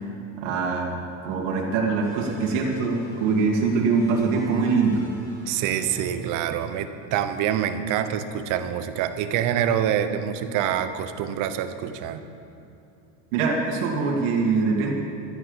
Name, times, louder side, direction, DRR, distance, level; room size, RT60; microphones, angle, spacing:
voice 1, 0.4-0.9 1.2-5.0 13.3-14.9, right 4 dB, 80° right, -1 dB, 2.2 m, -23 dB
sound 1, 2.0-7.3, left 1 dB, 85° left, 3.4 m, -42 dB
voice 2, 5.5-12.2, right 9 dB, 55° right, 10 dB, 1.0 m, -26 dB
12.5 x 9.6 x 7.1 m, 2.9 s
supercardioid pair, 130°, 38 cm